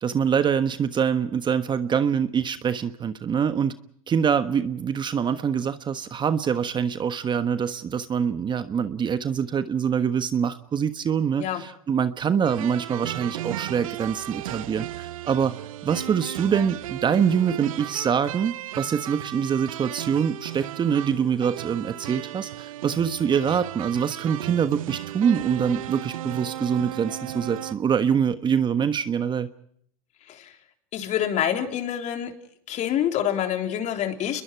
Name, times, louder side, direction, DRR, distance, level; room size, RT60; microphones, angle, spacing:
voice 1, 0.0-3.7 4.1-29.5, right 7 dB, 25° right, 11 dB, 1.3 m, -25 dB
sound 1, 12.4-27.7, right 13 dB, 75° right, 1.0 m, -35 dB
voice 2, 30.9-32.3 32.7-34.4, left 10 dB, 40° left, 6 dB, 3.6 m, -26 dB
30.0 x 22.0 x 4.7 m, 0.66 s
hypercardioid pair, 105°, 18 cm